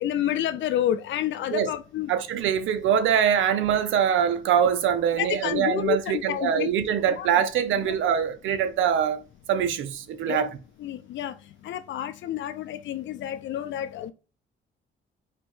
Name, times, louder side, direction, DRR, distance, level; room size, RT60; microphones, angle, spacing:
voice 1, 0.0-2.1 5.2-6.7 7.2-7.3 7.8-7.9 10.2-10.4 10.8-11.3 11.6-14.1, left 11 dB, 70° left, 0.5 m, -29 dB
voice 2, 2.1-9.2 9.5-10.5, right 8 dB, 80° right, 0.7 m, -23 dB
4.3 x 2.7 x 4.2 m
cardioid pair, 90°, 20 cm